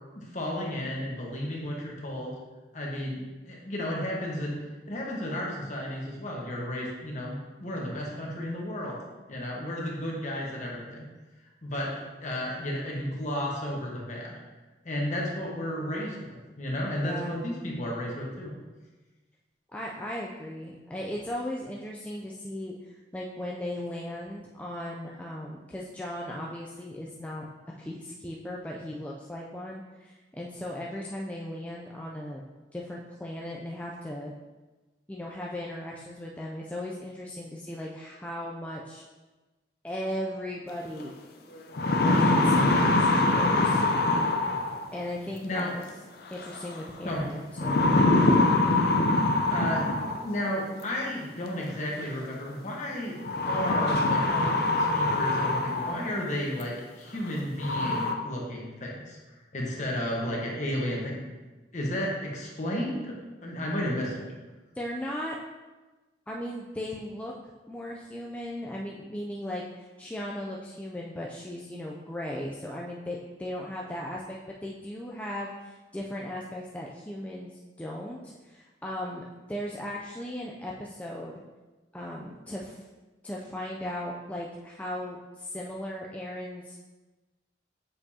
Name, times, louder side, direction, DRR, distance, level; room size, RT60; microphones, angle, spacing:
voice 1, 0.1-2.3 2.7-4.6 4.9-9.0 9.3-11.1 11.6-14.3 14.8-18.5 45.4-45.7 47.0-47.2 49.1-49.8 50.2-53.2 53.4-59.2 59.5-61.3 61.7-63.2 63.4-64.3, left 1 dB, 45° left, -2 dB, 1.2 m, -33 dB
voice 2, 17.0-17.4 19.7-27.5 27.8-32.4 32.7-34.3 35.1-39.0 39.8-41.2 42.0-43.8 44.9-45.8 46.3-47.9 64.8-65.4 66.3-67.3 67.7-81.4 81.9-82.8 83.2-86.8, left 1 dB, 10° left, -3 dB, 0.4 m, -37 dB
sound 1, 41.0-41.1 41.6-45.0 46.4-46.8 47.6-50.4 51.6-51.7 53.2-56.1 56.6-56.7 57.2-57.3 57.6-58.1, left 2 dB, 60° left, 0.6 m, -24 dB
6.6 x 5.2 x 2.8 m, 1.2 s
head